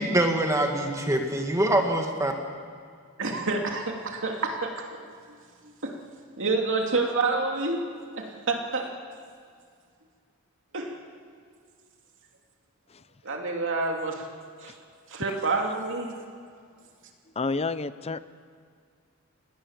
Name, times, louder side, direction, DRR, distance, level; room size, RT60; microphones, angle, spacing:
voice 1, 0.0-2.3, right 1 dB, 15° right, 3 dB, 2.0 m, -24 dB
voice 2, 3.2-4.7 5.8-6.0 6.4-7.8 8.2-8.9 10.7-10.9 13.2-14.2 14.6-14.7 15.1-16.2, right 3 dB, 60° right, 1 dB, 2.8 m, -28 dB
voice 3, 17.4-18.2, left 3 dB, 25° left, 14 dB, 0.6 m, -29 dB
28.0 x 19.0 x 7.4 m, 2.1 s
head